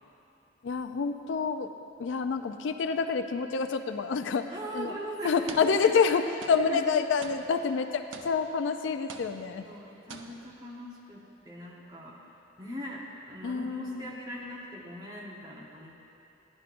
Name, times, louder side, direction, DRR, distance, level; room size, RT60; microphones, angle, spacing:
voice 1, 0.6-1.7 2.0-5.0 5.2-9.7 13.4-14.2, left 5 dB, 75° left, 8 dB, 0.4 m, -28 dB
sound 1, 4.4-4.6 5.5-6.1 6.4-8.7 9.1-9.8 10.1-10.7, right 4 dB, 85° right, 0.6 m, -47 dB
voice 2, 4.5-6.9 9.6-15.9, equal, 20° right, -4 dB, 1.0 m, -40 dB
11.5 x 10.5 x 2.5 m, 2.9 s
head